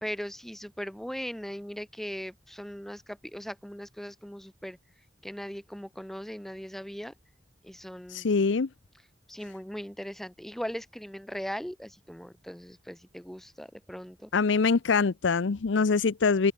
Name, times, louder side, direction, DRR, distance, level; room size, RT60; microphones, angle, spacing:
voice 1, 0.0-4.8 5.2-7.1 7.6-8.3 9.3-14.3, equal, ahead, 0.5 m, -39 dB
voice 2, 8.1-8.7 14.3-16.5, left 4 dB, 80° left, 0.6 m, -24 dB
open air
head